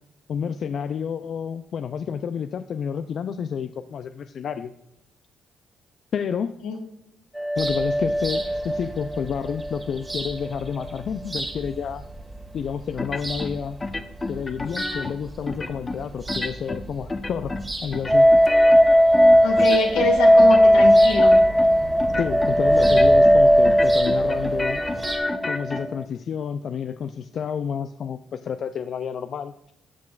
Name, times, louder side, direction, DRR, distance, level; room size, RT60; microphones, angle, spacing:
voice 1, 0.3-4.7 6.1-6.5 7.6-12.0 12.5-13.8 14.3-18.3 22.2-24.8 25.4-29.5, left 7 dB, 60° left, 10 dB, 0.4 m, -30 dB
sound 1, 7.4-10.5 10.8-10.9 18.1-26.0, equal, 5° right, 0.4 m, -17 dB
sound 2, 7.6-25.2, right 2 dB, 25° right, 1.7 m, -36 dB
sound 3, 13.0-13.5 13.8-15.1 15.5-16.0 16.3-16.8 17.1-17.7 17.9-20.1 20.4-20.9 21.2-21.7 22.0-22.5 22.8-23.4 23.6-25.8, left 2 dB, 30° left, 0.9 m, -30 dB
voice 2, 19.4-21.3, left 3 dB, 90° left, 0 dB, 1.9 m, -25 dB
13.0 x 7.4 x 2.4 m, 0.83 s
supercardioid pair, 60°, 0 cm